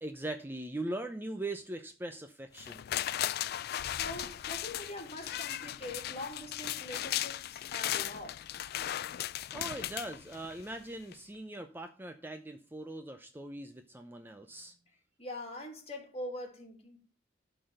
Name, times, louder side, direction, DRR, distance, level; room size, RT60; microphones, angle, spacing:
voice 1, 0.0-2.9 9.5-14.7, right 1 dB, 10° right, 0.6 m, -41 dB
sound 1, 2.6-10.7 11.1-11.2, left 12 dB, 55° left, 0.3 m, -37 dB
voice 2, 4.0-8.4 15.2-17.0, left 1 dB, 35° left, 2.5 m, -43 dB
12.0 x 4.0 x 6.4 m
head